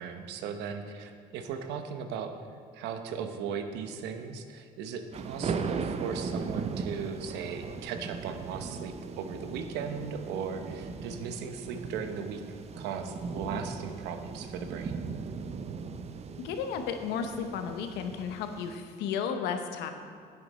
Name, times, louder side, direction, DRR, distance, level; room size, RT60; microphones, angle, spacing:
voice 1, 0.0-2.3 2.7-12.4 12.8-15.0, right 6 dB, 85° right, 7 dB, 0.9 m, -37 dB
sound 1, 5.1-18.7, right 5 dB, 40° right, 0.6 m, -38 dB
voice 2, 16.4-19.9, left 7 dB, 90° left, 7 dB, 0.9 m, -33 dB
10.5 x 8.9 x 4.2 m, 2.2 s
cardioid pair, 110°, 17 cm